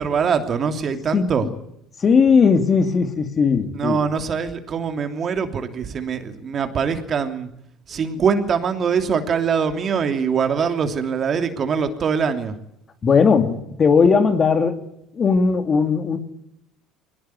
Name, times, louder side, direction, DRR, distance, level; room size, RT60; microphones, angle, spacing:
voice 1, 0.0-1.5 3.7-7.5 7.9-12.5, right 6 dB, 45° right, 7 dB, 3.0 m, -23 dB
voice 2, 1.1-1.5 2.0-4.0 13.0-14.8 15.1-16.2, left 5 dB, 40° left, 8 dB, 2.9 m, -17 dB
21.5 x 19.0 x 9.5 m, 0.76 s
hypercardioid pair, 70°, 0 cm